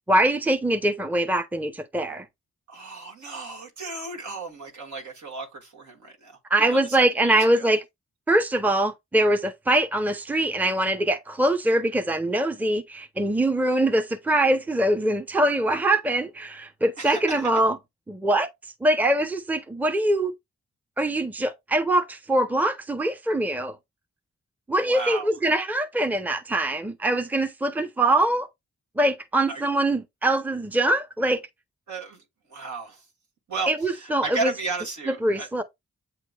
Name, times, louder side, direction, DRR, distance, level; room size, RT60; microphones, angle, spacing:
voice 1, 0.1-2.3 6.5-7.8 8.3-17.8 18.1-18.5 18.8-20.3 21.0-23.8 24.7-28.5 29.0-31.4 33.7-34.5 35.1-35.6, right 1 dB, 5° right, 0.6 m, -23 dB
voice 2, 2.7-6.4 6.7-7.7 17.0-17.6 24.8-25.3 29.5-29.6 31.9-32.2 32.5-33.0 33.5-35.5, right 3 dB, 75° right, 1.4 m, -34 dB
8.2 x 2.9 x 2.3 m
supercardioid pair, 40°, 30 cm